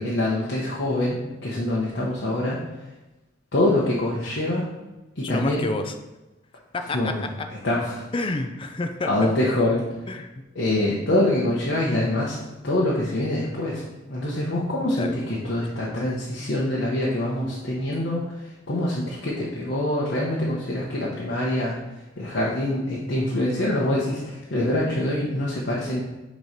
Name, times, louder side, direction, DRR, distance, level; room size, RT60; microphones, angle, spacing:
voice 1, 0.0-2.9 3.5-4.7 5.2-5.6 6.8-8.0 9.1-9.9 10.5-13.8 14.1-26.0, left 1 dB, 55° left, -5 dB, 0.9 m, -25 dB
voice 2, 5.2-5.9 6.7-7.1 8.1-9.3 10.1-10.3 15.0-15.2, left 2 dB, 25° left, 7 dB, 0.4 m, -29 dB
6.8 x 3.1 x 5.1 m, 1.1 s
head